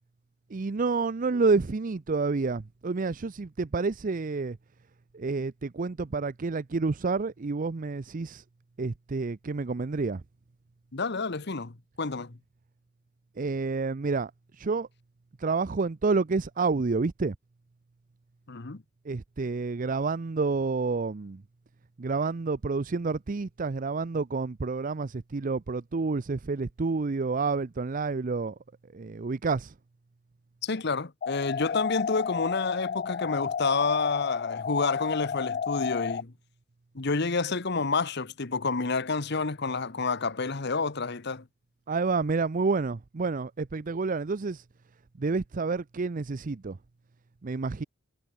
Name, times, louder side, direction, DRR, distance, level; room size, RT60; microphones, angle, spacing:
voice 1, 0.5-4.6 5.1-8.4 8.8-10.2 13.4-14.9 15.4-17.4 19.0-21.4 22.0-28.6 28.9-29.7 41.9-44.6 45.2-46.8 47.4-47.8, right 4 dB, 45° right, 0.5 m, -29 dB
voice 2, 10.9-12.4 18.5-18.8 30.6-36.3 36.9-41.5, left 4 dB, 60° left, 1.2 m, -29 dB
sound 1, 31.2-36.2, left 7 dB, 45° left, 0.4 m, -31 dB
head